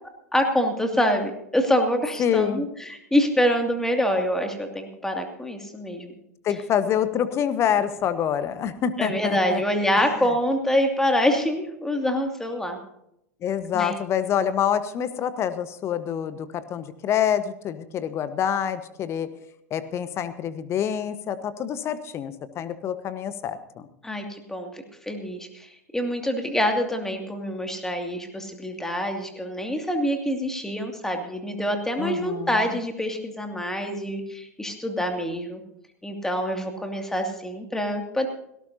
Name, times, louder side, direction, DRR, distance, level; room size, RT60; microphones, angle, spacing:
voice 1, 0.3-6.1 9.0-12.8 13.7-14.0 24.0-35.6 36.0-38.3, equal, 5° left, 4 dB, 2.6 m, -26 dB
voice 2, 2.2-2.7 6.4-9.6 10.0-10.3 13.4-19.3 19.7-23.9 32.0-32.8, left 9 dB, 30° left, 12 dB, 1.3 m, -26 dB
17.5 x 17.5 x 2.8 m, 0.79 s
figure-of-eight pair, 85°, 8 cm